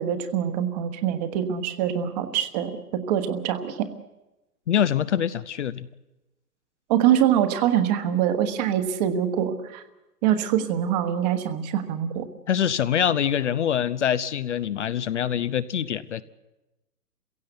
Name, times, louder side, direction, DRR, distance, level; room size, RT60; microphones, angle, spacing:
voice 1, 0.0-3.9 6.9-9.8 10.2-12.3, right 10 dB, 25° right, 9 dB, 1.4 m, -24 dB
voice 2, 4.7-5.9 12.5-16.2, left 9 dB, 50° left, 15 dB, 0.7 m, -24 dB
28.0 x 16.5 x 8.0 m, 1.0 s
figure-of-eight pair, 135°, 47 cm